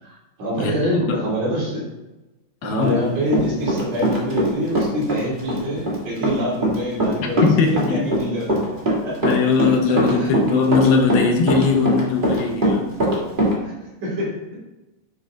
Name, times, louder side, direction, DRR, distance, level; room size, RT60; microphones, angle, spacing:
voice 1, 0.0-1.8 2.6-7.5 7.9-8.5 8.9-9.2 10.2-10.3 13.6-13.7 14.0-14.6, equal, 55° right, -7 dB, 4.0 m, -26 dB
voice 2, 0.6-1.3 2.6-3.1 7.2-8.1 9.2-12.9, left 4 dB, 85° left, 3 dB, 2.8 m, -20 dB
Run, 2.8-4.5 4.8-13.5, right 1 dB, 30° right, 0.8 m, -21 dB
8.6 x 5.4 x 3.8 m, 1.0 s
omnidirectional pair, 4.1 m